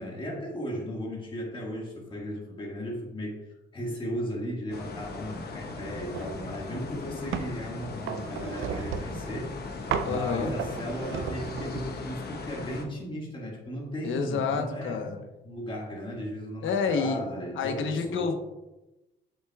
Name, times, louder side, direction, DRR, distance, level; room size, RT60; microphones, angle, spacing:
voice 1, 0.0-9.6 10.0-15.1 15.4-18.3, equal, 25° left, -2 dB, 1.8 m, -36 dB
sound 1, 4.7-12.9, left 3 dB, 55° left, 1.0 m, -39 dB
sound 2, 6.1-6.4 6.8-7.6 8.1-9.3 9.9-10.2 10.6-12.0, right 7 dB, 80° right, 0.6 m, -34 dB
voice 2, 10.0-10.5 14.0-15.2 16.6-17.2 17.6-18.3, left 5 dB, 75° left, 5 dB, 1.0 m, -28 dB
7.9 x 6.4 x 2.3 m, 1.0 s
cardioid pair, 90°, 20 cm